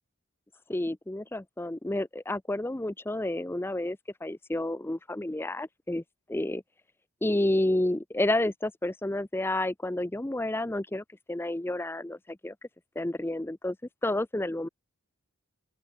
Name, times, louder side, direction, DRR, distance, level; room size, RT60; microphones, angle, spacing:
voice 1, 0.7-6.0 6.3-6.6 7.2-12.5 13.0-13.8 14.0-14.7, left 1 dB, 10° left, 0.5 m, -30 dB
open air
head